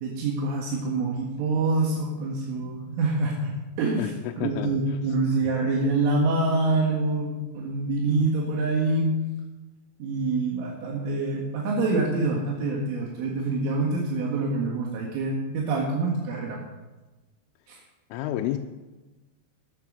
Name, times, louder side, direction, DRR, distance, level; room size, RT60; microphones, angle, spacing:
voice 1, 0.0-4.0 4.4-9.2 10.0-16.6 17.7-17.8, right 3 dB, 75° right, -2 dB, 4.3 m, -26 dB
voice 2, 4.0-5.0 5.4-5.5 18.1-18.6, left 13 dB, 85° left, 3 dB, 3.2 m, -31 dB
14.5 x 11.5 x 6.6 m, 1.1 s
omnidirectional pair, 5.7 m